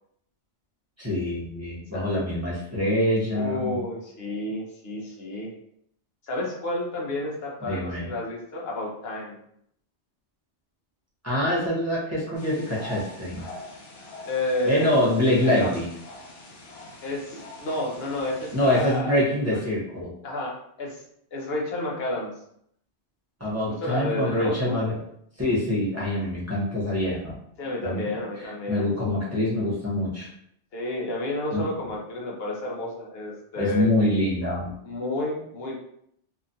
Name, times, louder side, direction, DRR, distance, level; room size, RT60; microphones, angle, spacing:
voice 1, 1.0-3.8 7.6-8.1 11.2-13.4 14.6-15.9 18.5-20.1 23.4-24.9 25.4-27.4 27.8-28.0 28.7-30.3 31.5-31.7 33.6-34.8, left 1 dB, 15° right, -8 dB, 0.7 m, -25 dB
voice 2, 3.3-5.5 6.3-9.4 14.3-15.1 15.6-15.7 17.0-19.2 19.5-19.6 20.2-21.0 21.3-22.3 23.8-24.7 27.6-28.9 30.7-33.9 34.8-35.7, left 1 dB, 65° left, -2 dB, 0.9 m, -30 dB
sound 1, 12.3-18.9, left 2 dB, 85° left, 1.1 m, -43 dB
2.8 x 2.3 x 2.6 m, 0.71 s
omnidirectional pair, 1.2 m